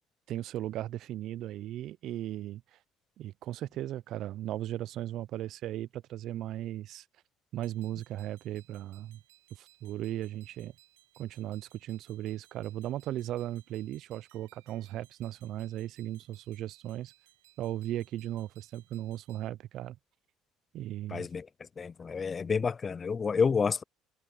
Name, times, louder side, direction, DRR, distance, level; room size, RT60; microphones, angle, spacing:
voice 1, 0.3-2.6 3.2-7.0 7.5-9.2 9.5-10.7 11.2-17.1 17.6-20.0 20.7-21.3, right 13 dB, 65° right, 0.4 m, -37 dB
sound 1, 7.6-19.5, right 18 dB, 90° right, 5.0 m, -64 dB
voice 2, 21.1-21.5 21.8-23.8, left 5 dB, 35° left, 0.4 m, -29 dB
hypercardioid pair, 75°, 0 cm